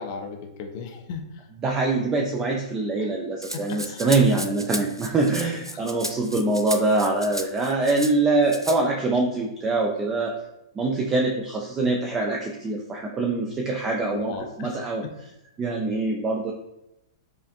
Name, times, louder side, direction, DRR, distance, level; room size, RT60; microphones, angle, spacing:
voice 1, 0.0-1.4 3.0-3.1 3.5-4.0 5.7-5.8 14.1-15.1, left 5 dB, 40° left, 4 dB, 0.5 m, -36 dB
voice 2, 1.6-10.3 10.8-15.0 15.6-16.5, right 3 dB, 20° right, 1 dB, 0.4 m, -24 dB
Rattle (instrument), 3.4-8.1 8.5-8.8, right 1 dB, 90° right, 0.3 m, -34 dB
4.8 x 2.5 x 2.3 m, 0.87 s
figure-of-eight pair, 105°, 2 cm